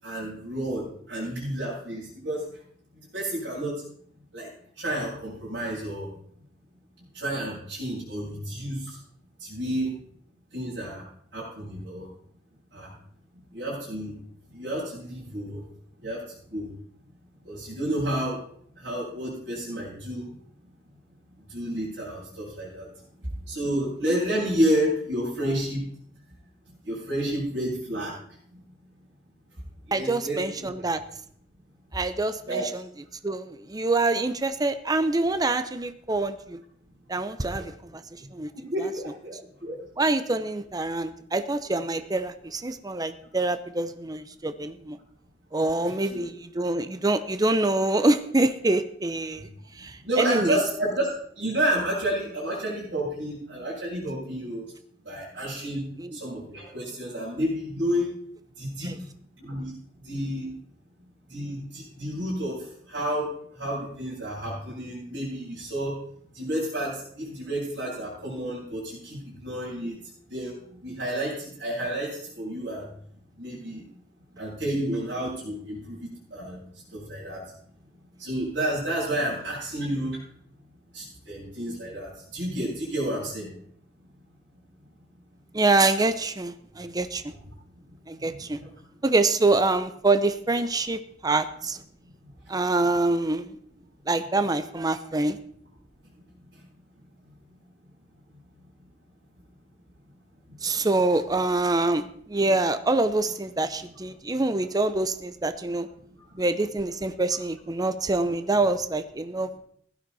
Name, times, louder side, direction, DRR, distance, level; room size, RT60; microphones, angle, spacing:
voice 1, 0.0-2.4 3.1-3.7 4.3-4.5 4.8-6.1 7.1-8.8 9.5-9.9 10.5-11.0 11.3-12.0 12.7-12.9 13.5-14.1 14.5-15.6 16.0-16.2 16.5-16.7 17.4-18.4 18.8-20.3 21.5-22.8 23.5-25.8 26.8-28.1 29.9-30.7 32.5-32.7 37.6-37.7 38.7-39.3 39.6-39.7 45.8-46.2 50.0-51.1 51.4-54.6 55.0-55.8 56.1-58.1 58.6-59.0 59.4-59.7 60.0-60.5 61.3-62.6 62.9-63.3 63.6-65.9 66.3-70.0 70.3-70.5 70.8-72.9 73.4-73.8 74.4-76.0 76.3-76.6 76.9-77.4 78.2-80.2 80.9-83.5 88.3-88.7 104.8-104.9, right 1 dB, 75° right, -10 dB, 7.9 m, -30 dB
voice 2, 29.9-31.0 31.9-32.8 33.2-36.6 37.1-38.0 38.3-38.5 40.0-45.0 45.5-49.5 49.8-50.6 56.0-56.2 58.8-58.9 85.5-87.2 88.1-88.6 89.0-91.8 92.5-93.6 94.1-95.4 100.6-105.9 106.4-109.5, right 2 dB, 20° right, 10 dB, 0.7 m, -25 dB
16.0 x 12.0 x 4.2 m, 0.64 s
head